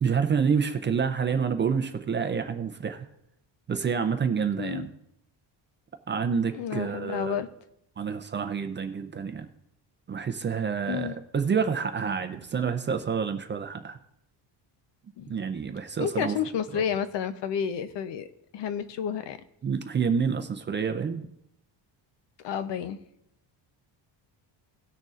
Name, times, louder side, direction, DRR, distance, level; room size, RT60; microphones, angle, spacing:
voice 1, 0.0-3.1 3.7-4.9 6.1-7.4 8.0-9.5 10.1-14.0 15.3-16.4 16.7-16.8 19.6-21.3, right 6 dB, 25° right, 7 dB, 0.5 m, -28 dB
voice 2, 6.5-7.5 10.9-11.1 15.2-15.3 16.0-18.3 18.5-19.4 22.4-23.0, left 8 dB, 65° left, 12 dB, 0.8 m, -30 dB
18.5 x 6.5 x 2.5 m, 0.79 s
cardioid pair, 165°, 46 cm